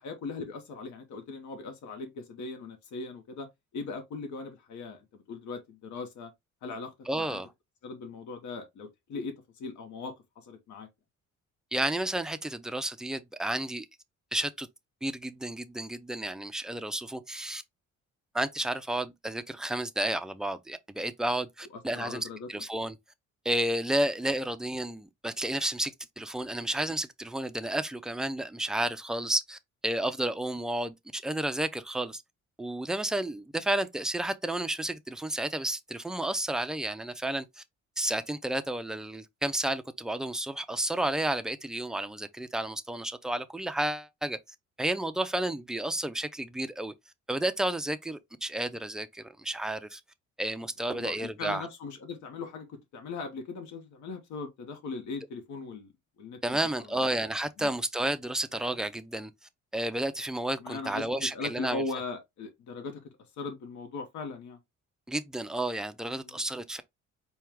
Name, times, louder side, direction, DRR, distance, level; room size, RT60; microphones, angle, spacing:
voice 1, 0.0-3.5 3.7-5.0 5.3-6.3 6.6-7.4 7.8-10.9 21.9-22.5 50.9-55.9 56.2-56.7 57.0-57.1 57.6-57.7 60.6-63.0 63.4-64.6 66.2-66.4, left 4 dB, 75° left, 1.0 m, -39 dB
voice 2, 7.1-7.5 11.7-13.9 14.3-14.7 15.0-17.6 18.3-23.0 23.4-32.2 32.6-37.6 38.0-44.4 44.8-46.9 47.3-50.0 50.4-51.7 56.4-59.3 59.7-61.8 65.1-66.8, right 1 dB, ahead, 0.3 m, -31 dB
4.5 x 2.2 x 3.4 m
cardioid pair, 130°, 29 cm